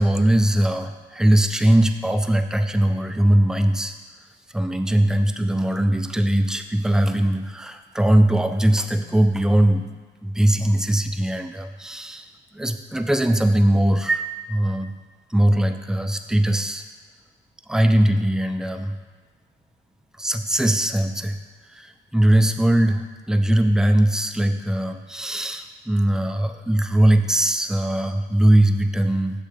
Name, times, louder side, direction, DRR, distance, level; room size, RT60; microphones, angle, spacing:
voice 1, 0.0-3.9 4.5-9.9 10.2-12.2 12.6-14.9 15.3-16.8 17.7-18.9 20.2-21.4 21.7-21.9 22.1-29.3, right 1 dB, 5° right, 7 dB, 0.4 m, -20 dB
6.9 x 6.7 x 3.3 m, 1.3 s
cardioid pair, 90°, 20 cm